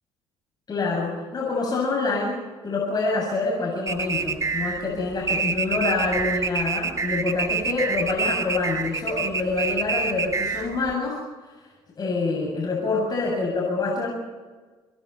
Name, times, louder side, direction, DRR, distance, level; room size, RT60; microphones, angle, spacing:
voice 1, 0.7-11.2 12.0-14.1, left 3 dB, 40° left, -2 dB, 7.8 m, -26 dB
sound 1, 3.9-10.9, right 4 dB, 30° right, 2.2 m, -27 dB
27.0 x 21.5 x 4.5 m, 1.3 s
supercardioid pair, 65°, 11 cm